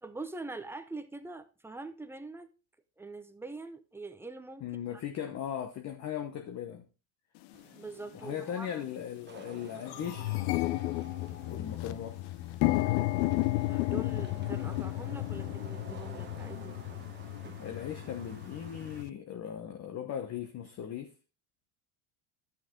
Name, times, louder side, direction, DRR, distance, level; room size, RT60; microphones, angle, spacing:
voice 1, 0.0-2.5 3.0-4.6 7.8-8.8 13.5-16.8, right 3 dB, 5° right, 0.6 m, -43 dB
voice 2, 4.6-6.8 8.1-10.4 11.5-12.2 17.6-21.1, left 9 dB, 35° left, 1.0 m, -38 dB
sound 1, 7.5-7.6 8.4-8.6 9.0-9.1 9.4-19.1, left 18 dB, 60° left, 0.7 m, -33 dB
Wind / Rain, 7.5-19.0, right 7 dB, 25° right, 1.0 m, -52 dB
12.0 x 5.9 x 3.7 m
supercardioid pair, 135°, 47 cm